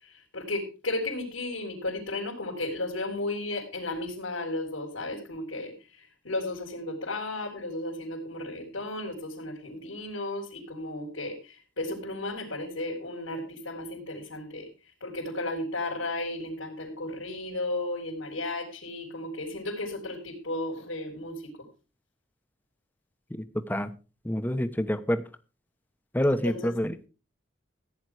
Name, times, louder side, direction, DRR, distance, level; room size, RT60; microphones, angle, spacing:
voice 1, 0.0-14.7 15.0-21.4 26.3-26.7, left 2 dB, 85° left, -4 dB, 3.8 m, -34 dB
voice 2, 24.2-25.2 26.1-27.1, equal, 10° left, 10 dB, 1.0 m, -27 dB
15.0 x 9.5 x 4.8 m, 0.34 s
head